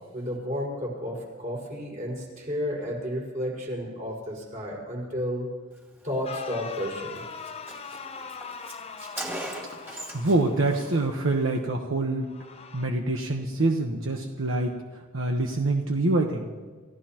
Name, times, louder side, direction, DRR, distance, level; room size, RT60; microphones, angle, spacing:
voice 1, 0.1-5.5 6.0-7.2, equal, 40° right, -3 dB, 5.4 m, -32 dB
sound 1, 6.2-11.4 12.2-12.8, left 5 dB, 30° left, 0.7 m, -41 dB
Car, 6.7-6.9 7.2-7.3 7.5-10.4 10.7-10.9, right 1 dB, 10° right, 2.6 m, -38 dB
voice 2, 10.1-12.3 12.7-14.8 15.1-16.5, right 2 dB, 80° right, 2 dB, 1.2 m, -25 dB
29.5 x 15.0 x 3.0 m, 1.4 s
head